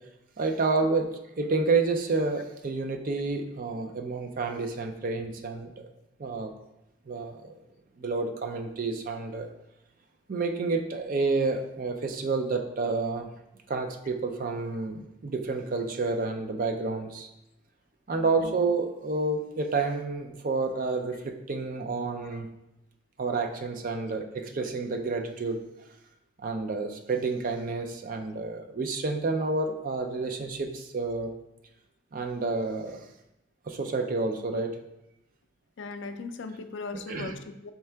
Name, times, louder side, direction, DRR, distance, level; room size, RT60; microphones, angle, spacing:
voice 1, 0.4-1.1 1.4-5.9 6.2-6.5 7.1-7.5 8.0-9.5 10.3-13.3 13.7-17.3 18.1-22.5 23.2-25.6 26.4-31.3 32.1-33.1 33.7-34.8 37.1-37.3, right 3 dB, 45° right, 4 dB, 0.5 m, -29 dB
voice 2, 18.1-18.5 35.8-37.7, left 4 dB, 65° left, 8 dB, 0.4 m, -39 dB
4.5 x 3.6 x 3.3 m, 0.88 s
head